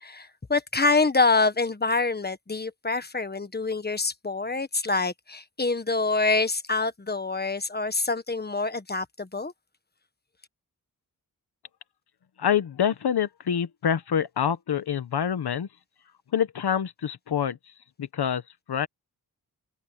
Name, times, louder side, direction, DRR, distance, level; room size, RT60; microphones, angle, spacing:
voice 1, 0.0-9.5, left 3 dB, 25° left, 1.5 m, -26 dB
voice 2, 12.4-15.7 16.3-17.6 18.0-18.4 18.7-18.9, left 8 dB, 85° left, 1.2 m, -26 dB
wide cardioid pair, 80°, 38 cm